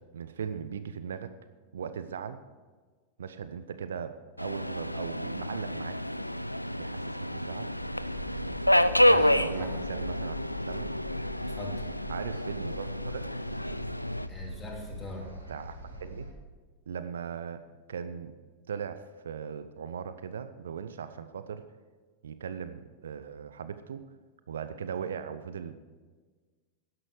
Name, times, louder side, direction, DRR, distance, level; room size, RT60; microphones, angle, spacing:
voice 1, 0.1-1.3 1.7-2.4 3.2-6.0 6.8-7.7 9.4-10.4 10.7-10.9 12.1-13.3 15.5-15.7 16.0-16.3 16.9-17.6 17.9-18.3 18.7-21.6 22.2-24.0 24.5-25.7, right 7 dB, 65° right, 12 dB, 0.6 m, -38 dB
Subway metro underground, 4.4-14.3, left 1 dB, 90° left, 0.4 m, -29 dB
sound 1, 7.7-16.3, equal, 80° right, 1.8 m, -42 dB
voice 2, 9.0-9.7 11.5-11.8 14.3-15.3, left 2 dB, 15° left, -1 dB, 3.1 m, -41 dB
12.5 x 10.5 x 4.8 m, 1.4 s
figure-of-eight pair, 90°, 0 cm